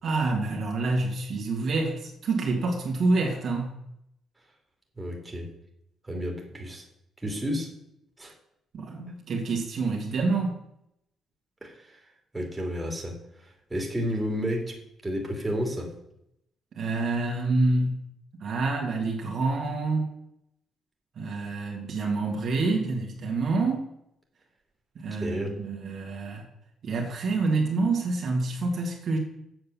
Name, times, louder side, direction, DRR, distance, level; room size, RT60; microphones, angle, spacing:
voice 1, 0.0-3.8 8.7-10.6 16.7-18.0 18.4-20.1 21.2-23.9 25.0-26.4 26.8-29.2, right 3 dB, 60° right, 0 dB, 2.2 m, -27 dB
voice 2, 5.0-5.5 6.0-6.8 7.2-7.7 8.2-8.3 11.6-12.0 12.3-14.8 15.0-15.9 25.2-25.6, equal, 10° right, 1 dB, 2.7 m, -31 dB
7.9 x 6.6 x 7.1 m, 0.77 s
cardioid pair, 90°, 0 cm